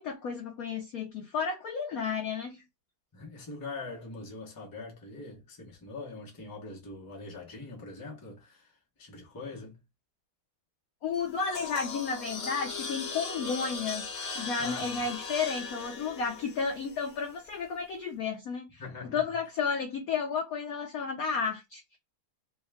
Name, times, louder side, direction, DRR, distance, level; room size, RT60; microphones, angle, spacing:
voice 1, 0.0-2.6 11.0-14.1 14.4-18.8 19.1-22.0, left 5 dB, 85° left, 0.7 m, -32 dB
voice 2, 3.1-9.8 14.6-15.1 18.8-19.4, left 3 dB, 25° left, 0.4 m, -43 dB
sound 1, 11.1-17.4, left 4 dB, 50° left, 1.1 m, -39 dB
3.5 x 2.3 x 3.4 m
omnidirectional pair, 2.2 m